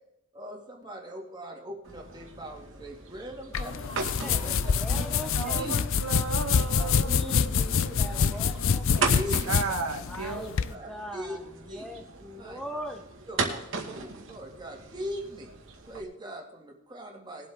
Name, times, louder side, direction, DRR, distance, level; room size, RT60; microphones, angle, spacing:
voice 1, 0.3-4.7 5.5-5.8 6.8-6.9 9.1-9.6 10.3-11.4 11.7-11.9 12.4-12.6 13.3-15.5 15.9-17.5, equal, 20° right, 0 dB, 2.3 m, -40 dB
sound 1, 1.8-16.0, right 4 dB, 60° right, 2.0 m, -38 dB
sound 2, 3.5-10.7, left 6 dB, 65° left, 0.5 m, -26 dB
voice 2, 3.5-5.1 5.3-8.3 9.0-9.1 9.5-10.4, right 4 dB, 90° right, 4 dB, 1.7 m, -36 dB
voice 3, 4.1-5.8 7.0-9.2 10.1-13.1, equal, ahead, 4 dB, 1.0 m, -41 dB
20.0 x 7.9 x 3.8 m, 0.84 s
head